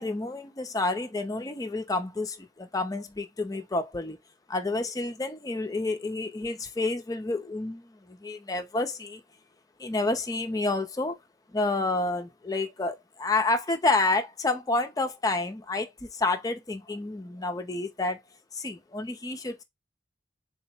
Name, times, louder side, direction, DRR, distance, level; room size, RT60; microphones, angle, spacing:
voice 1, 0.0-4.2 4.5-9.2 9.8-11.2 11.5-18.2 18.5-19.6, left 2 dB, 20° left, 0.4 m, -29 dB
3.8 x 2.0 x 4.2 m
head